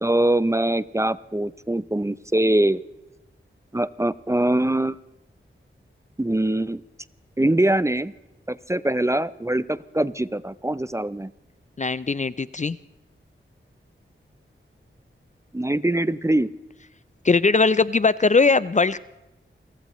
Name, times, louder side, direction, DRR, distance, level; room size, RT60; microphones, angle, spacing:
voice 1, 0.0-2.8 3.7-5.0 6.2-6.8 7.4-8.1 8.5-11.3 15.5-16.5, right 1 dB, 15° right, 16 dB, 0.6 m, -23 dB
voice 2, 11.8-12.8 17.2-19.0, left 4 dB, 35° left, 17 dB, 0.5 m, -20 dB
30.0 x 15.0 x 3.1 m, 0.99 s
wide cardioid pair, 75°, 21 cm